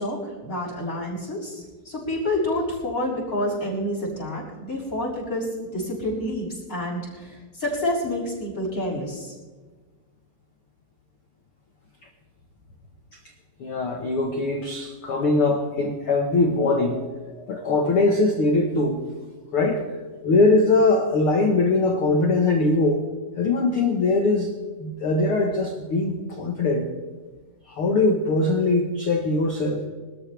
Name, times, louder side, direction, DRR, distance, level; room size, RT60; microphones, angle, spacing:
voice 1, 0.0-9.3, left 1 dB, 20° left, -5 dB, 6.4 m, -28 dB
voice 2, 13.6-19.0 19.5-19.8 20.2-23.0 23.4-24.5 24.8-26.9 27.7-29.9, left 2 dB, 75° left, 3 dB, 1.2 m, -21 dB
24.0 x 13.5 x 3.4 m, 1.3 s
omnidirectional pair, 4.6 m